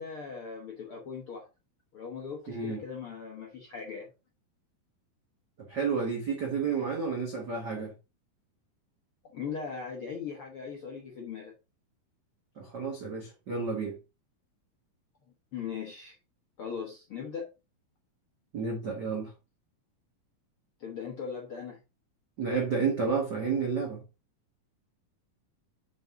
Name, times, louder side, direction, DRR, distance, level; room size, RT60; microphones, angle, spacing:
voice 1, 0.0-1.5 1.9-4.1 9.3-11.5 15.5-16.2 16.6-17.5 20.8-21.8, left 6 dB, 70° left, 1.3 m, -39 dB
voice 2, 2.5-2.8 5.7-7.9 12.6-14.0 18.5-19.3 22.4-24.0, right 5 dB, 80° right, 0.9 m, -31 dB
6.5 x 6.4 x 3.7 m
omnidirectional pair, 4.3 m